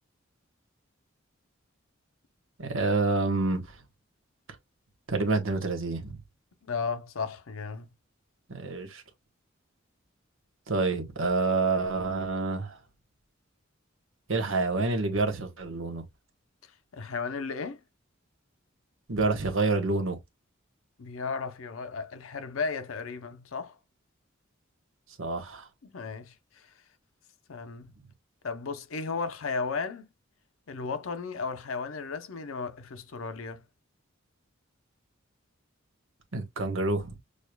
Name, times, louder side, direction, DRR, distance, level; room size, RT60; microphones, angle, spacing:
voice 1, 2.6-3.8 5.1-6.2 8.5-9.0 10.7-12.8 14.3-16.0 19.1-20.2 25.2-25.7 36.3-37.2, right 3 dB, 80° right, 1.2 m, -28 dB
voice 2, 6.7-7.9 16.9-17.8 21.0-23.8 25.8-26.7 27.5-27.9 28.4-30.1 30.7-33.6, left 4 dB, 85° left, 0.7 m, -34 dB
6.5 x 2.4 x 2.2 m
head